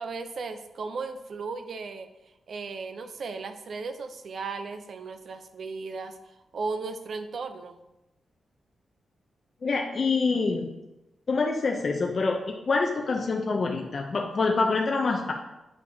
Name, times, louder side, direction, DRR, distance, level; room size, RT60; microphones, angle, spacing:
voice 1, 0.0-2.1 2.5-6.2 6.5-7.8, right 4 dB, 55° right, 9 dB, 0.5 m, -36 dB
voice 2, 9.6-10.7 11.3-15.3, left 4 dB, 40° left, 2 dB, 0.5 m, -26 dB
8.0 x 5.5 x 2.7 m, 0.97 s
wide cardioid pair, 140°, 0 cm